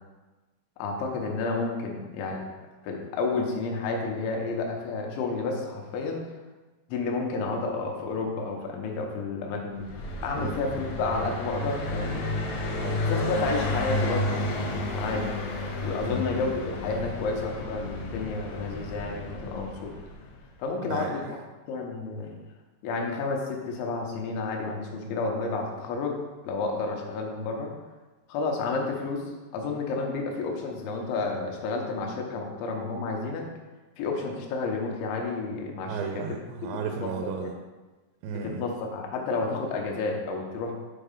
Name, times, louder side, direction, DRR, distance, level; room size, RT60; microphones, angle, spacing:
voice 1, 0.8-2.5 2.8-6.2 6.9-9.9 10.2-12.3 13.1-15.3 15.8-19.9 20.6-21.2 21.7-22.3 22.8-26.2 26.4-27.7 28.3-29.3 29.5-33.5 34.0-36.2 37.0-37.5 38.4-40.7, left 3 dB, 85° left, 0 dB, 3.4 m, -31 dB
Car passing by, 9.8-20.4, left 2 dB, 70° left, 1.9 m, -31 dB
voice 2, 12.7-13.1 16.0-16.2 20.9-21.3 35.9-37.5 38.2-38.6, right 6 dB, 85° right, 3 dB, 2.8 m, -34 dB
8.3 x 4.2 x 5.3 m, 1.2 s
omnidirectional pair, 5.2 m